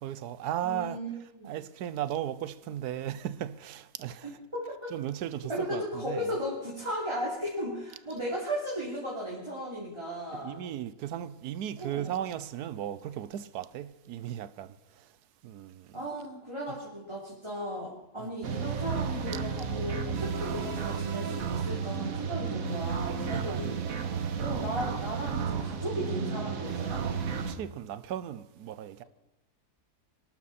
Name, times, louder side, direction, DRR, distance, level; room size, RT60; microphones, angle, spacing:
voice 1, 0.0-1.0 1.4-4.3 4.9-6.3 10.3-15.1 15.4-16.0 16.7-16.8 18.2-18.3 23.1-24.3 27.4-29.0, right 11 dB, 85° right, 1.2 m, -36 dB
voice 2, 0.6-1.5 4.2-4.9 5.5-10.6 11.8-12.2 15.9-23.7 24.4-27.1, equal, 15° right, 3.2 m, -36 dB
sound 1, 18.4-27.5, right 6 dB, 65° right, 1.5 m, -32 dB
24.5 x 11.5 x 4.2 m
omnidirectional pair, 1.6 m